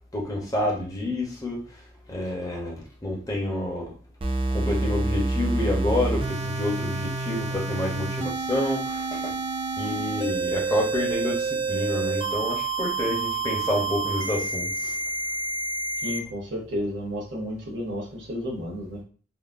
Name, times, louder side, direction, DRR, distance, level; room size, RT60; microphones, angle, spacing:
voice 1, 0.1-1.8 2.1-3.9 4.5-9.4 9.8-14.9, left 1 dB, 15° left, -3 dB, 0.7 m, -29 dB
sound 1, 4.2-16.2, right 3 dB, 25° right, 0.3 m, -28 dB
voice 2, 16.0-19.0, equal, 60° right, -4 dB, 0.8 m, -32 dB
3.6 x 2.0 x 2.4 m, 0.40 s
head